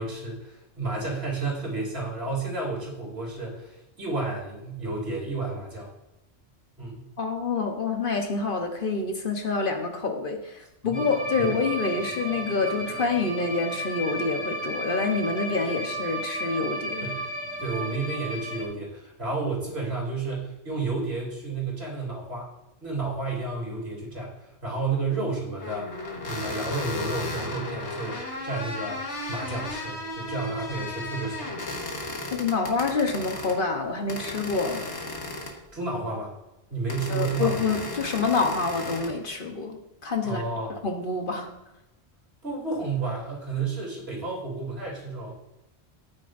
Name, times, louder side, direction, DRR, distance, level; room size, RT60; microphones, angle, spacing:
voice 1, 0.0-5.9 6.8-7.1 10.8-11.0 11.4-11.5 17.0-17.3 17.6-22.5 22.8-24.3 24.6-25.9 26.3-29.0 29.3-31.5 35.7-36.3 36.7-37.6 40.2-40.7 42.4-45.3, right 3 dB, 65° right, -3 dB, 3.5 m, -31 dB
voice 2, 7.2-17.1 32.3-34.9 37.1-40.4 40.7-41.5, left 4 dB, 55° left, 4 dB, 1.2 m, -27 dB
sound 1, 10.9-18.6, right 1 dB, 5° right, 2.0 m, -33 dB
sound 2, 25.6-33.6 34.1-35.7 36.9-39.1, left 2 dB, 85° left, 1.8 m, -35 dB
12.5 x 9.5 x 2.6 m, 0.94 s
omnidirectional pair, 1.1 m